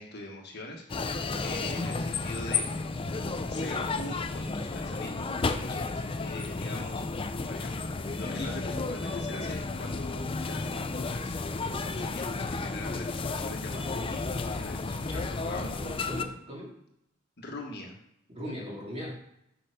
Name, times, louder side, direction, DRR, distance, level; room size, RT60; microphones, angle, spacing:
voice 1, 0.0-2.7 3.5-7.2 7.5-15.7 17.4-18.0, left 2 dB, 55° left, 0 dB, 1.5 m, -42 dB
sound 1, 0.9-16.2, left 3 dB, 25° left, 0.4 m, -32 dB
voice 2, 15.5-16.7 18.3-19.2, equal, 30° right, -3 dB, 2.4 m, -39 dB
6.7 x 5.9 x 5.1 m, 0.80 s
head